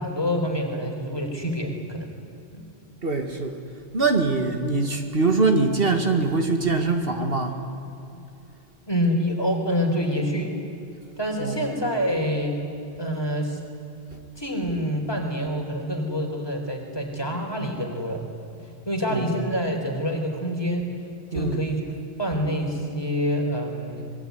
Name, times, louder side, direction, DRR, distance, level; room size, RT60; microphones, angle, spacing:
voice 1, 0.0-2.1 2.5-2.6 8.9-10.5 11.2-12.6 13.0-13.6 14.4-18.3 18.9-20.9 21.3-24.1, equal, 25° left, 2 dB, 4.1 m, -26 dB
voice 2, 3.0-3.6 3.9-7.6 11.4-11.7 19.1-19.3 21.3-21.6, right 3 dB, 65° right, 5 dB, 2.2 m, -23 dB
25.5 x 22.0 x 9.5 m, 2.7 s
omnidirectional pair, 1.1 m